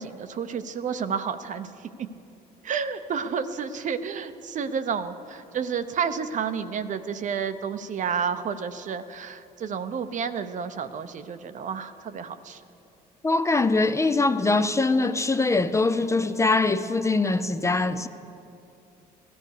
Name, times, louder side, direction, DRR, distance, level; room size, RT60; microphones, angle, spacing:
voice 1, 0.0-1.7 2.0-2.1 2.6-12.6, right 6 dB, 50° right, 0.8 m, -30 dB
voice 2, 13.2-18.1, left 3 dB, 15° left, 0.5 m, -23 dB
16.0 x 13.5 x 6.6 m
cardioid pair, 110°, 17 cm